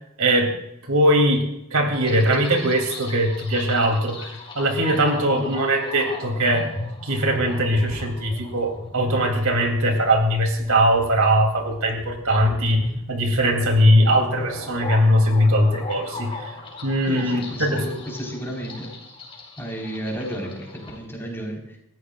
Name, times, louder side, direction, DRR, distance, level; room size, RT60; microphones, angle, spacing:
voice 1, 0.2-0.5 0.9-1.4 1.7-4.3 4.5-6.7 7.0-16.5 16.8-18.0, equal, 90° right, 3 dB, 3.2 m, -20 dB
sound 1, 1.9-21.0, left 2 dB, 25° left, 4.5 m, -37 dB
voice 2, 17.1-18.9 19.6-21.8, equal, 10° left, -2 dB, 4.7 m, -32 dB
28.5 x 14.5 x 2.5 m, 0.81 s
head